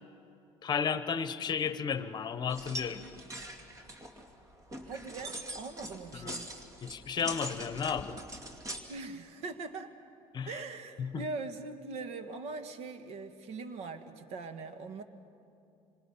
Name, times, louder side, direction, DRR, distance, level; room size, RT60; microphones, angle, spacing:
voice 1, 0.6-3.0 6.1-6.4 6.8-8.2 10.3-10.5 11.0-11.2, left 7 dB, 40° left, 11 dB, 1.1 m, -33 dB
sound 1, 2.5-8.8, right 1 dB, 30° right, 2.5 m, -43 dB
voice 2, 4.8-6.5 8.9-9.9 10.5-15.0, right 3 dB, 75° right, 8 dB, 1.7 m, -41 dB
26.5 x 26.0 x 5.8 m, 2.7 s
cardioid pair, 110°, 12 cm